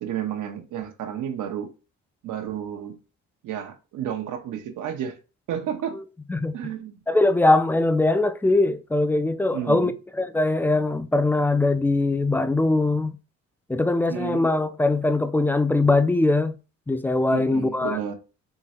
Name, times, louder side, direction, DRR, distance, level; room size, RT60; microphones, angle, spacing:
voice 1, 0.0-1.7 2.2-3.0 3.4-5.2 5.5-6.0 6.5-7.0 9.5-9.9 14.1-14.5 17.3-18.1, right 9 dB, 80° right, 0.9 m, -31 dB
voice 2, 7.1-9.9 10.2-13.1 13.7-16.5 16.9-18.0, left 2 dB, 5° left, 0.3 m, -21 dB
3.8 x 3.1 x 2.8 m
cardioid pair, 90°, 30 cm